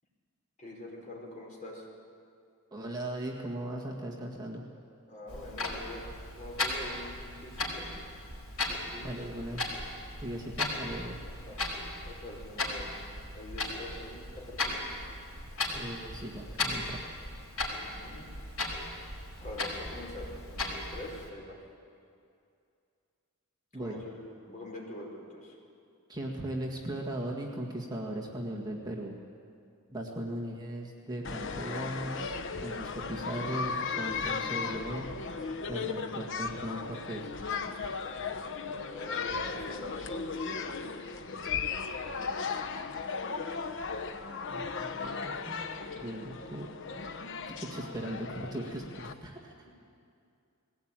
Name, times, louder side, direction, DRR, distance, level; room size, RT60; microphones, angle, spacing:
voice 1, 0.6-1.9 5.1-6.1 6.4-7.9 8.6-9.1 11.4-11.6 12.0-14.8 17.8-18.3 19.4-21.6 23.7-25.6 38.8-40.1, left 1 dB, 35° left, -2 dB, 4.8 m, -44 dB
voice 2, 2.7-4.6 9.0-9.7 10.2-11.2 15.7-17.1 23.7-24.0 26.1-29.1 29.9-32.2 32.6-35.1 35.7-37.3 44.5-45.6 46.0-46.7 47.5-49.5, right 1 dB, 20° right, -2 dB, 1.8 m, -38 dB
Clock, 5.3-21.3, left 2 dB, 75° left, 4.8 m, -37 dB
sound 1, 31.2-49.1, left 5 dB, 60° left, 1.0 m, -36 dB
21.0 x 17.0 x 9.0 m, 2.4 s
head